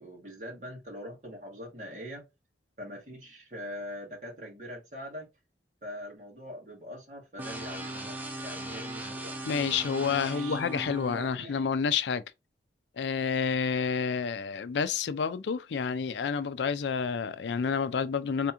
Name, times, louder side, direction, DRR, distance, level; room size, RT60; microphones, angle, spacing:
voice 1, 0.0-2.3 2.8-5.3 5.8-9.5 10.2-10.6 11.1-11.7, equal, 45° right, 1.9 m, -43 dB
sound 1, 7.4-11.4, right 1 dB, 10° right, 0.5 m, -38 dB
voice 2, 9.5-12.2 13.0-18.5, left 6 dB, 80° left, 0.4 m, -29 dB
3.4 x 2.9 x 3.4 m
head